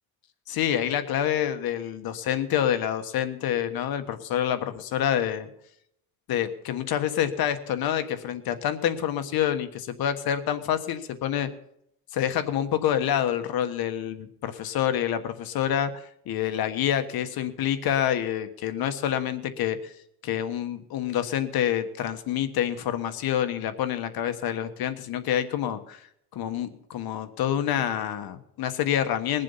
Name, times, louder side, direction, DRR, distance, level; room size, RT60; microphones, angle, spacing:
voice 1, 0.5-5.5 6.3-11.5 12.1-19.9 20.2-26.0 26.3-29.4, left 10 dB, 75° left, 9 dB, 1.4 m, -27 dB
21.5 x 7.5 x 5.5 m, 0.74 s
cardioid pair, 130°, 37 cm